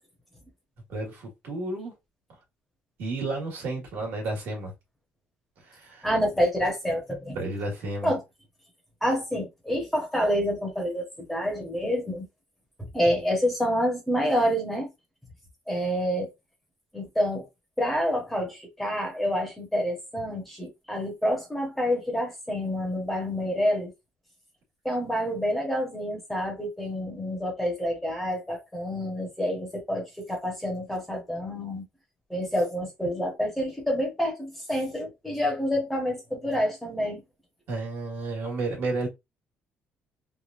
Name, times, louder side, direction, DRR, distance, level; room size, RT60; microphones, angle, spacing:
voice 1, 0.9-1.9 3.0-4.7 5.6-6.1 7.3-8.1 37.7-39.1, right 2 dB, 65° right, 1.6 m, -32 dB
voice 2, 6.0-7.4 8.0-8.2 9.0-12.3 12.9-14.9 15.7-16.3 16.9-17.5 17.8-23.9 24.8-31.8 32.3-37.2, equal, 5° left, 1.1 m, -28 dB
3.3 x 2.4 x 2.5 m
cardioid pair, 170°, 4 cm